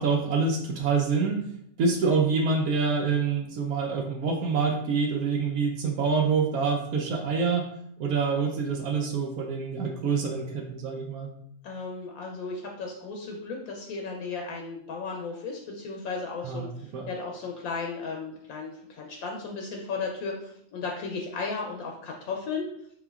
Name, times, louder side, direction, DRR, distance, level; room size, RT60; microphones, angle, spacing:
voice 1, 0.0-1.5 1.8-7.7 8.0-11.3 16.4-17.1, right 5 dB, 75° right, 2 dB, 1.0 m, -26 dB
voice 2, 11.6-22.7, left 4 dB, 75° left, 1 dB, 1.0 m, -35 dB
4.4 x 3.6 x 2.3 m, 0.70 s
omnidirectional pair, 1.6 m